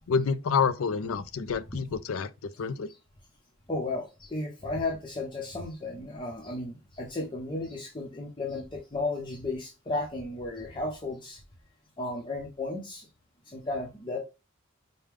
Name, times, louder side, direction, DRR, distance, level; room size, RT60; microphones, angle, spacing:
voice 1, 0.1-2.9, left 5 dB, 85° left, 0.5 m, -28 dB
voice 2, 3.7-11.4 12.0-13.1 13.5-14.2, left 2 dB, 25° left, 0.8 m, -34 dB
5.0 x 2.2 x 3.4 m
head